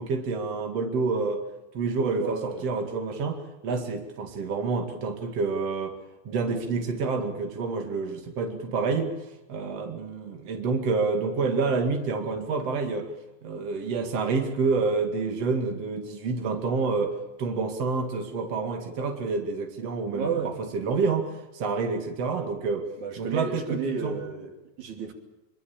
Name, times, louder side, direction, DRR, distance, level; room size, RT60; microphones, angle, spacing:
voice 1, 0.0-1.4 1.7-6.0 6.2-9.1 9.5-13.1 13.4-22.9 23.2-24.2, right 4 dB, 60° right, 4 dB, 3.4 m, -28 dB
voice 2, 2.2-2.6 20.1-20.6 23.0-25.1, right 5 dB, 90° right, 4 dB, 4.2 m, -32 dB
24.5 x 23.5 x 7.4 m, 0.99 s
omnidirectional pair, 3.3 m